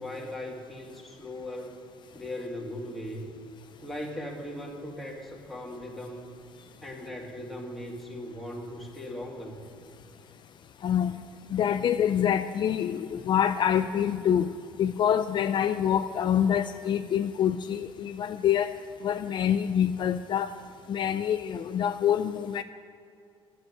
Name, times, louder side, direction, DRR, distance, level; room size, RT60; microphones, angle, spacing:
voice 1, 0.0-1.8 2.1-3.4 3.8-6.3 6.8-9.6, left 1 dB, ahead, -2 dB, 2.3 m, -38 dB
voice 2, 10.8-11.1 11.5-14.5 14.8-18.7 19.0-20.5 20.9-22.6, left 9 dB, 50° left, 9 dB, 0.4 m, -26 dB
10.5 x 8.0 x 9.7 m, 2.5 s
cardioid pair, 95°, 10 cm